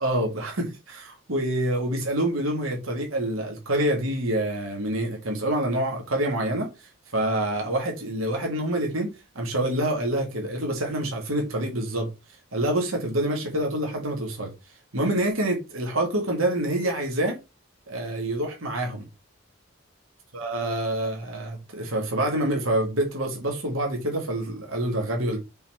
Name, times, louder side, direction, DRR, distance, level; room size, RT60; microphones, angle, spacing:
voice 1, 0.0-12.1 12.5-14.5 14.9-17.4 17.9-19.1 20.3-25.4, right 1 dB, 80° right, 1.9 m, -27 dB
5.6 x 3.9 x 4.5 m
head